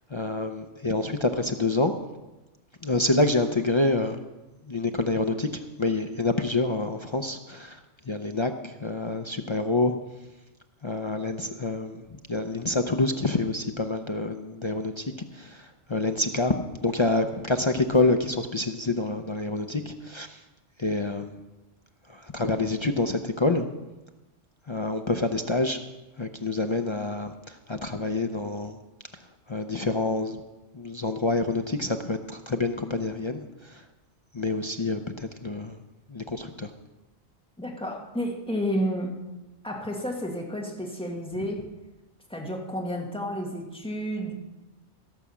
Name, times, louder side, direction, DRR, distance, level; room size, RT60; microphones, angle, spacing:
voice 1, 0.1-1.9 2.8-4.2 4.7-7.8 8.1-9.9 10.8-16.5 16.8-20.4 20.8-21.3 22.1-23.7 24.7-25.8 26.2-28.8 29.5-30.4 30.7-33.8 34.3-35.8 36.1-36.7, left 2 dB, 35° left, 6 dB, 0.5 m, -27 dB
voice 2, 37.6-39.2 39.6-41.7 42.3-44.3, equal, 5° left, 0 dB, 1.8 m, -31 dB
16.5 x 6.2 x 7.0 m, 1.1 s
omnidirectional pair, 1.2 m